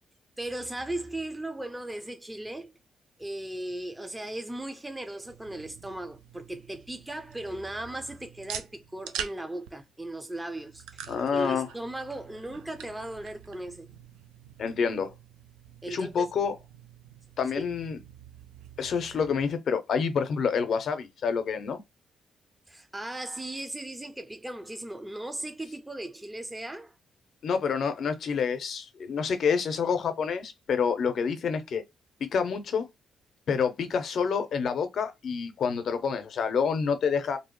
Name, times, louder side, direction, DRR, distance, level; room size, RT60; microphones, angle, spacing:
voice 1, 0.4-2.7 3.2-13.9 15.8-16.3 17.6-17.7 22.7-26.9, right 1 dB, 15° right, 0.5 m, -37 dB
sound 1, 5.2-19.4, right 9 dB, 85° right, 0.3 m, -45 dB
voice 2, 11.1-11.7 14.6-15.1 15.9-16.5 17.4-18.0 18.8-21.8 27.4-31.8 32.2-32.9 33.5-37.4, left 6 dB, 65° left, 0.6 m, -28 dB
2.7 x 2.0 x 3.0 m
supercardioid pair, 50°, 0 cm